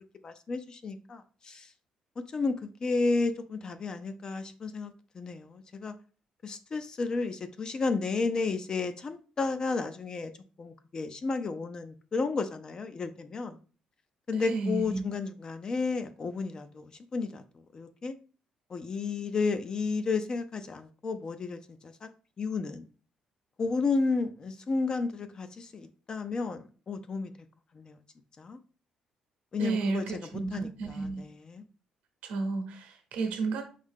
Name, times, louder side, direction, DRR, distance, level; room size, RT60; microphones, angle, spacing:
voice 1, 0.2-1.7 2.3-5.9 6.4-10.3 10.6-13.6 14.3-18.1 18.7-22.1 22.4-22.8 23.6-27.3 27.7-28.0 28.4-28.6 29.5-30.0 30.5-31.6, left 4 dB, 35° left, 0.4 m, -32 dB
voice 2, 14.3-15.0 29.6-31.2 32.2-33.6, right 3 dB, 90° right, 0.9 m, -32 dB
4.9 x 2.7 x 3.5 m
cardioid pair, 115°, 2 cm